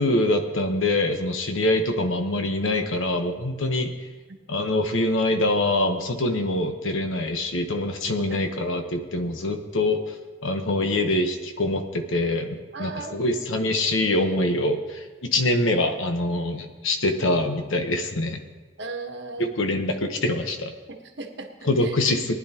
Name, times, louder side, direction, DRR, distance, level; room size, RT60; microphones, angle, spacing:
voice 1, 0.0-4.1 4.5-18.4 19.4-20.7 21.6-22.3, left 1 dB, 85° left, 5 dB, 1.2 m, -24 dB
voice 2, 12.7-13.3 18.8-19.5 20.9-21.5 21.8-21.9, right 3 dB, 60° right, 4 dB, 1.3 m, -36 dB
19.5 x 10.5 x 3.0 m, 1.3 s
head